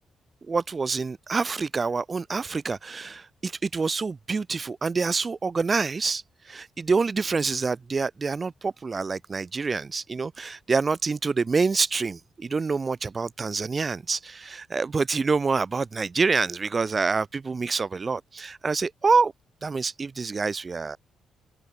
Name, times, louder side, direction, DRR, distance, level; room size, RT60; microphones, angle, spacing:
voice 1, 0.5-19.3 19.6-21.0, right 4 dB, 25° right, 0.3 m, -26 dB
open air
cardioid pair, 155°, 0 cm